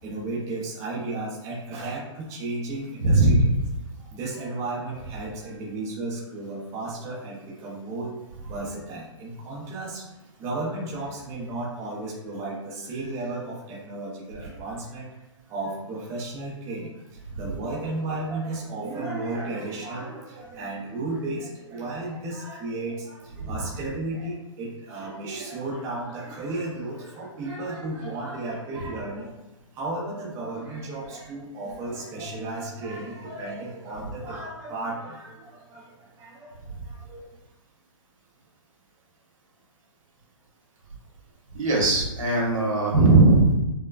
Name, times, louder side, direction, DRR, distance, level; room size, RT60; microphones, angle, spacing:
voice 1, 0.0-3.4 4.0-10.1 10.4-15.2 15.5-37.3, right 2 dB, 15° right, -5 dB, 0.7 m, -34 dB
voice 2, 3.0-3.5 17.3-17.4 23.4-23.5 41.5-43.6, right 2 dB, 90° right, -3 dB, 1.4 m, -19 dB
4.4 x 2.2 x 2.4 m, 0.98 s
hypercardioid pair, 155°, 17 cm